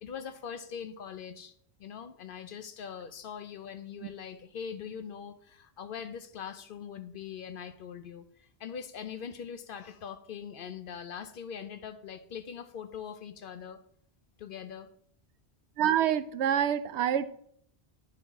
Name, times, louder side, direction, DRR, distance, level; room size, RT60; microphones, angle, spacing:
voice 1, 0.0-1.5 1.8-8.2 8.6-13.8 14.4-14.9, left 7 dB, 60° left, 0.7 m, -42 dB
voice 2, 15.8-17.2, right 10 dB, 85° right, 0.9 m, -26 dB
11.0 x 4.5 x 3.6 m
omnidirectional pair, 1.1 m